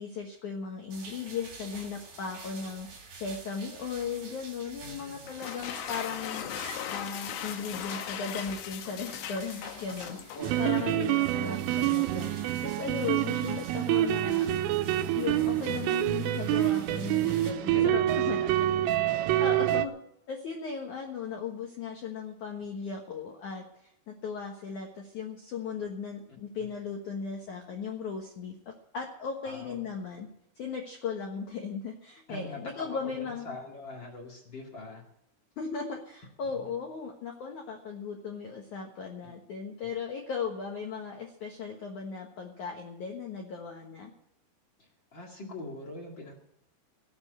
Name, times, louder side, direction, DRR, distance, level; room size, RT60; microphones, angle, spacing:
voice 1, 0.0-2.9 3.1-14.5 15.1-18.4 19.4-19.9 20.3-30.3 30.5-33.5 35.6-44.1, left 5 dB, 90° left, 1 dB, 1.7 m, -37 dB
sound 1, 0.9-17.5, right 4 dB, 40° right, 3.9 m, -49 dB
voice 2, 4.8-5.3 10.3-10.9 17.7-18.6 19.0-19.6 29.4-29.8 32.3-35.0 36.5-36.7 44.8-46.3, left 2 dB, 50° left, 0 dB, 1.3 m, -43 dB
sound 2, 5.3-10.9, left 10 dB, 75° left, 2.8 m, -38 dB
sound 3, 10.4-19.9, right 13 dB, 85° right, 3.2 m, -27 dB
17.5 x 8.1 x 7.9 m, 0.78 s
omnidirectional pair, 5.7 m